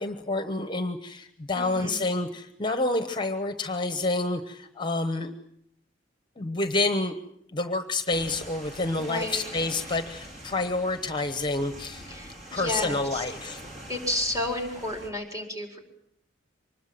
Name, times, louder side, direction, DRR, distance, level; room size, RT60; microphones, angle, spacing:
voice 1, 0.0-5.3 6.4-7.2 7.5-12.1 12.5-13.6, left 2 dB, 25° left, 9 dB, 1.1 m, -28 dB
voice 2, 1.6-2.1 9.0-9.5 12.1-13.2 13.9-15.8, left 1 dB, 15° right, 3 dB, 4.6 m, -32 dB
sound 1, 8.1-15.1, right 1 dB, 40° right, 4.4 m, -44 dB
25.0 x 20.5 x 7.7 m, 0.74 s
head